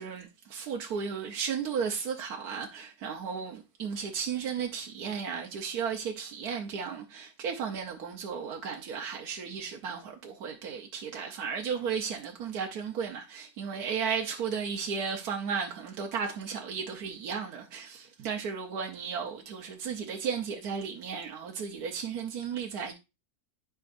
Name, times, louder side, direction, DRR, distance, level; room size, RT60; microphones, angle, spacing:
voice 1, 0.0-22.9, right 6 dB, 75° right, 1.5 m, -34 dB
11.0 x 5.0 x 2.6 m
omnidirectional pair, 1.6 m